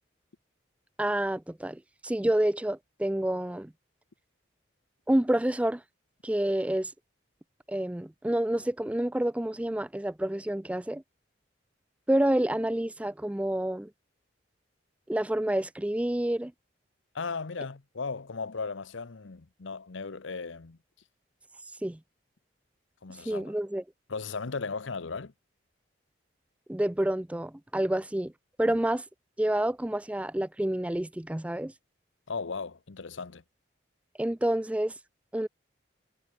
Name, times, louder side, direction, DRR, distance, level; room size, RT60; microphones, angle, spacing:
voice 1, 1.0-3.7 5.1-5.8 6.2-6.9 7.7-11.0 12.1-13.9 15.1-16.5 21.8-22.0 23.3-23.8 26.7-28.3 28.6-29.0 29.4-31.7 34.2-34.9 35.3-35.5, right 1 dB, 5° right, 0.3 m, -28 dB
voice 2, 17.1-20.8 23.0-23.5 24.1-25.3 32.3-33.4, left 4 dB, 80° left, 0.9 m, -36 dB
head